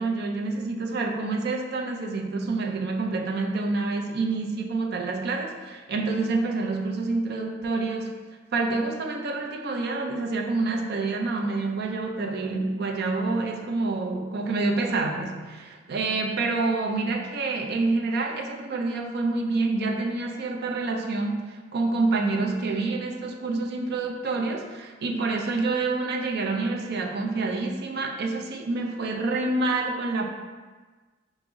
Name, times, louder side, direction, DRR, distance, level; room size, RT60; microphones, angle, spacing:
voice 1, 0.0-8.1 8.5-30.3, right 3 dB, 55° right, 1 dB, 0.4 m, -27 dB
5.0 x 2.0 x 3.5 m, 1.3 s
head